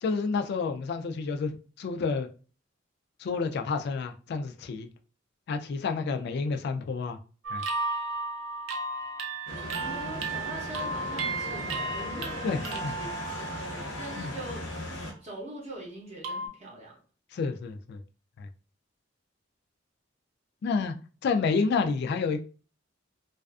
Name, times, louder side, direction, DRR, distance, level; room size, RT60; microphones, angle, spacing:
voice 1, 0.0-1.5 1.8-2.3 3.2-4.9 5.5-7.2 7.5-7.6 12.4-12.9 14.2-14.3 17.3-18.0 18.4-18.5 20.6-20.9 21.2-22.4, left 4 dB, 55° left, 6 dB, 0.3 m, -29 dB
sound 1, 7.4-14.3 14.7-15.1 16.2-16.5, right 3 dB, 70° right, 0.5 m, -34 dB
sound 2, 9.5-15.1, left 1 dB, 75° left, 0.7 m, -38 dB
voice 2, 9.8-14.7 15.2-17.0, right 1 dB, 35° right, -3 dB, 0.7 m, -42 dB
2.4 x 2.3 x 2.3 m, 0.38 s
head